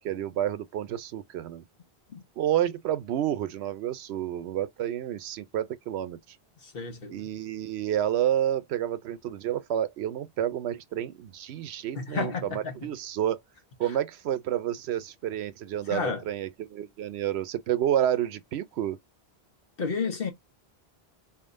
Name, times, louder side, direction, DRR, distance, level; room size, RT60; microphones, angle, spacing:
voice 1, 0.0-1.6 2.4-6.2 7.1-13.4 13.8-19.0, right 11 dB, 80° right, 0.8 m, -29 dB
voice 2, 6.6-7.1 11.9-12.7 15.9-16.2 19.8-20.3, left 4 dB, 60° left, 1.3 m, -31 dB
4.0 x 3.6 x 2.4 m
omnidirectional pair, 1.1 m